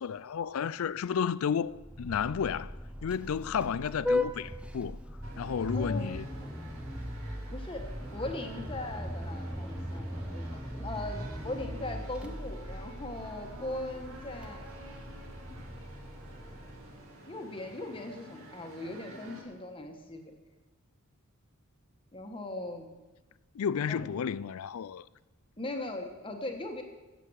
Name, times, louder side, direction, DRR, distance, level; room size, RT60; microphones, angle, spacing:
voice 1, 0.0-2.7 3.0-5.0 5.4-6.3 23.5-25.1, left 7 dB, 75° left, 0.4 m, -32 dB
Vehicle horn car horn honking, 1.7-17.1, left 1 dB, 5° right, 0.7 m, -38 dB
sound 1, 5.2-19.4, right 1 dB, 75° right, 2.7 m, -50 dB
voice 2, 5.7-6.2 7.5-7.9 8.1-14.7 17.3-20.3 22.1-22.9 23.8-24.1 25.6-26.8, left 2 dB, 25° left, 1.4 m, -39 dB
16.0 x 7.7 x 6.4 m
head